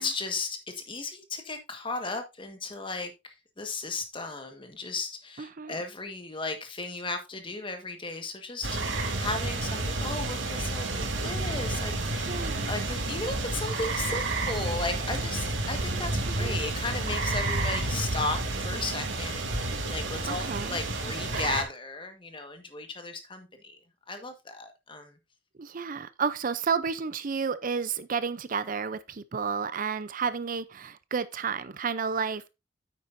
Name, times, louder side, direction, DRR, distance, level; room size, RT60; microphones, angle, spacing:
voice 1, 0.0-12.4 12.7-23.8 24.1-25.2, left 3 dB, 25° left, 1.5 m, -35 dB
voice 2, 5.4-5.8 12.3-12.7 16.3-16.6 20.2-20.8 25.6-32.5, right 6 dB, 45° right, 0.5 m, -31 dB
sound 1, 8.6-21.6, right 2 dB, 80° right, 2.6 m, -30 dB
9.4 x 8.8 x 2.6 m
head